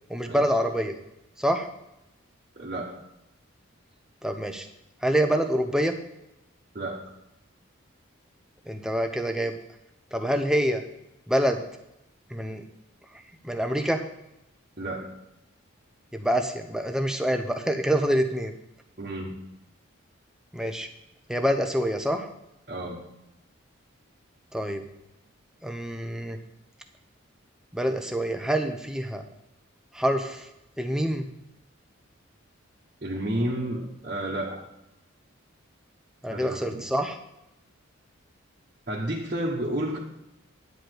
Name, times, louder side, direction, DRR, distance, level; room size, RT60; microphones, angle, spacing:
voice 1, 0.1-1.0 1.4-1.7 4.2-4.7 5.0-5.9 8.7-9.6 10.1-10.8 11.3-11.6 12.3-12.6 13.4-14.0 16.1-18.5 20.5-20.9 21.3-22.3 24.5-24.8 25.6-26.4 27.7-29.2 29.9-30.5 30.8-31.3 36.2-37.2, equal, 5° right, 5 dB, 0.8 m, -26 dB
voice 2, 2.5-3.0 6.7-7.0 14.8-15.1 19.0-19.4 22.7-23.0 33.0-34.7 36.3-36.8 38.9-40.0, right 1 dB, 40° right, -5 dB, 1.3 m, -31 dB
10.5 x 5.0 x 7.8 m, 0.87 s
head